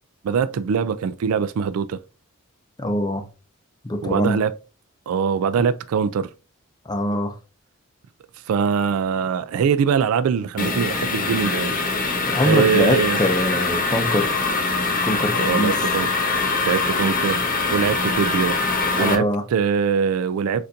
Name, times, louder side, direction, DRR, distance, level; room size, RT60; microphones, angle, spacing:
voice 1, 0.2-2.0 4.0-4.5 5.1-6.3 8.5-11.8 12.4-13.2 15.4-17.4 17.7-18.6 19.0-20.7, right 6 dB, 85° right, 0.3 m, -22 dB
voice 2, 2.8-3.2 3.9-4.4 6.9-7.3 12.3-14.3 15.0-15.7 19.0-19.4, left 1 dB, 20° left, 0.5 m, -23 dB
sound 1, 10.6-19.2, left 3 dB, 40° left, 0.9 m, -23 dB
6.6 x 2.5 x 2.6 m
head